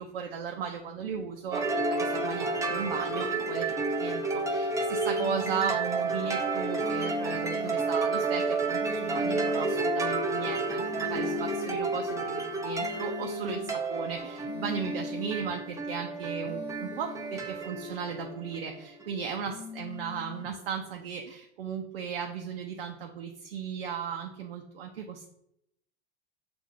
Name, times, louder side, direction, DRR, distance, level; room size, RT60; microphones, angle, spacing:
voice 1, 0.0-25.3, right 7 dB, 80° right, 3 dB, 0.6 m, -36 dB
sound 1, 1.5-19.4, right 3 dB, 10° right, 0.6 m, -31 dB
sound 2, 5.2-5.8 6.8-7.8 8.8-9.8 10.8-11.8 12.8-13.8 14.4-15.5 16.4-17.5 19.4-20.5, left 8 dB, 40° left, 0.8 m, -44 dB
6.7 x 2.6 x 2.5 m, 0.77 s
hypercardioid pair, 105°, 29 cm